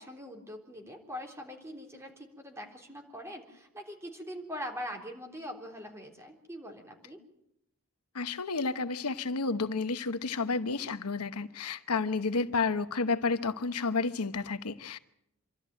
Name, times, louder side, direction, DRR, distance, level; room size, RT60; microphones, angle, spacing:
voice 1, 0.0-7.2, equal, 10° right, 3 dB, 3.6 m, -42 dB
voice 2, 8.1-15.0, left 4 dB, 90° left, 11 dB, 1.0 m, -31 dB
26.5 x 13.0 x 9.0 m, 0.78 s
head